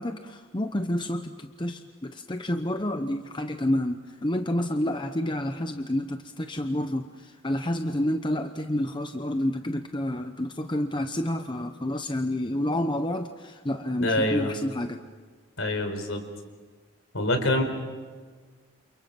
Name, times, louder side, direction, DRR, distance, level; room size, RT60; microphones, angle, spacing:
voice 1, 0.0-15.0, left 1 dB, 20° left, 6 dB, 0.9 m, -29 dB
voice 2, 14.0-14.5 15.6-16.2 17.1-17.6, left 1 dB, 65° left, 6 dB, 4.6 m, -25 dB
29.5 x 28.5 x 6.0 m, 1.5 s
head